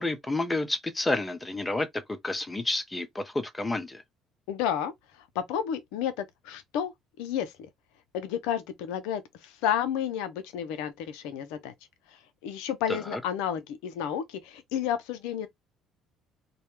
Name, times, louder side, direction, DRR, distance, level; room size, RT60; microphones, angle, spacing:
voice 1, 0.0-1.9 2.2-4.0 12.9-13.2, left 2 dB, 15° left, 0.6 m, -30 dB
voice 2, 4.5-4.9 5.3-6.9 7.2-7.7 8.1-11.7 12.4-15.5, left 9 dB, 80° left, 0.5 m, -31 dB
2.3 x 2.1 x 3.0 m
supercardioid pair, 75°, 0 cm